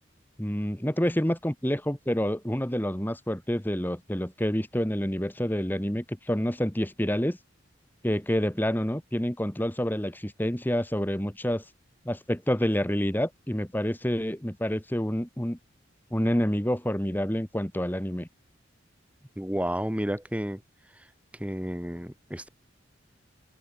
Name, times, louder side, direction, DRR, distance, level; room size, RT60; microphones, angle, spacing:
voice 1, 0.4-7.4 8.0-11.6 12.0-15.6 16.1-18.3, equal, 10° left, 1.7 m, -28 dB
voice 2, 19.4-20.6 20.9-21.1 21.4-22.5, equal, 5° right, 1.6 m, -31 dB
head